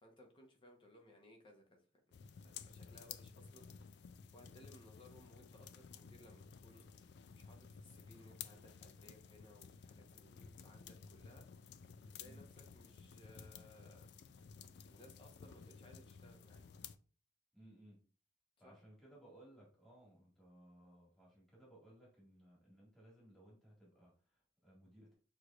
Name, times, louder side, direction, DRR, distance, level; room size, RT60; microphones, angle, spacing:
voice 1, 0.0-2.2 2.4-3.7 4.3-6.9 7.3-11.5 12.0-14.2 14.9-16.6 18.6-18.8, left 1 dB, 30° left, 2 dB, 1.0 m, -62 dB
sound 1, 2.1-17.0, left 6 dB, 65° left, 0.3 m, -55 dB
voice 2, 17.5-18.0 18.6-25.1, right 1 dB, 5° left, -6 dB, 1.8 m, -62 dB
6.3 x 3.1 x 2.5 m, 0.38 s
head